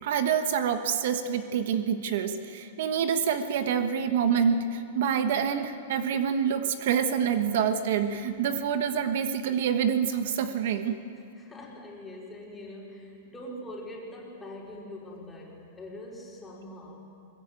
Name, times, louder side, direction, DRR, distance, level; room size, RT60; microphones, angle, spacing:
voice 1, 0.0-11.0, right 7 dB, 65° right, 8 dB, 1.3 m, -27 dB
voice 2, 11.3-17.0, left 1 dB, 10° left, -3 dB, 4.7 m, -43 dB
22.0 x 21.0 x 9.2 m, 2.5 s
supercardioid pair, 150°, 0 cm